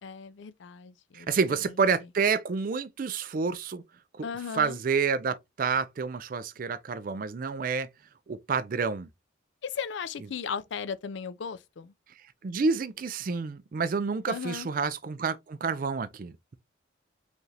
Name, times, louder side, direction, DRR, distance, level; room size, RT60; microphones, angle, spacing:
voice 1, 0.0-1.3 4.2-4.8 9.6-11.9 14.3-14.7, left 6 dB, 70° left, 0.4 m, -36 dB
voice 2, 1.1-3.8 4.2-4.3 4.5-7.9 8.3-9.1 12.4-16.5, right 5 dB, 45° right, 0.4 m, -29 dB
5.1 x 2.5 x 3.2 m
head